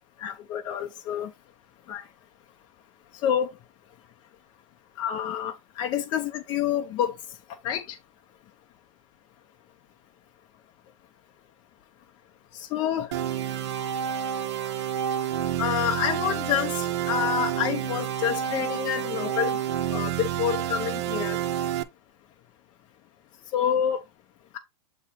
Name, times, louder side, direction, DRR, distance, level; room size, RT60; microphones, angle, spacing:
voice 1, 0.2-1.3 1.9-2.0 3.2-3.5 5.0-7.2 7.6-8.0 12.5-13.1 15.6-19.6 19.9-21.4 23.5-24.0, left 9 dB, 30° left, 0.6 m, -28 dB
sound 1, 13.1-21.8, right 10 dB, 65° right, 1.0 m, -29 dB
8.0 x 3.0 x 4.3 m
supercardioid pair, 160°, 16 cm